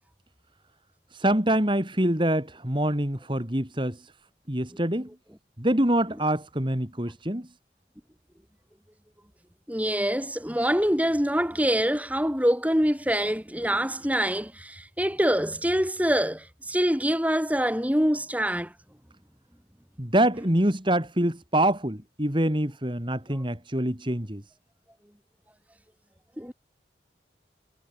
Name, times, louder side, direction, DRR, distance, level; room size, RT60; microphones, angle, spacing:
voice 1, 1.1-4.0 4.5-5.1 5.6-7.5 20.0-24.4, right 1 dB, 25° right, 3.2 m, -25 dB
voice 2, 9.7-18.7 26.4-26.5, equal, 10° right, 4.8 m, -25 dB
head